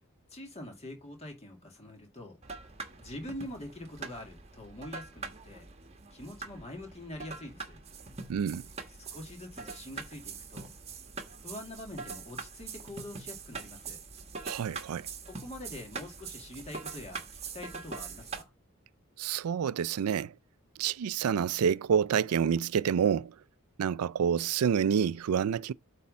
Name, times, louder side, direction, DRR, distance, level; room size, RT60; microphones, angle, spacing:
voice 1, 0.3-2.4 3.0-5.7 6.1-7.8 9.1-10.7 11.4-14.0 15.3-17.3 17.5-18.5, left 1 dB, 30° left, 2.1 m, -44 dB
sound 1, 2.4-18.4, right 4 dB, 30° right, 1.3 m, -43 dB
voice 2, 8.3-8.6 14.4-15.1 19.2-20.3 20.8-23.3 23.8-25.7, right 7 dB, 80° right, 0.4 m, -28 dB
8.4 x 3.5 x 5.2 m
head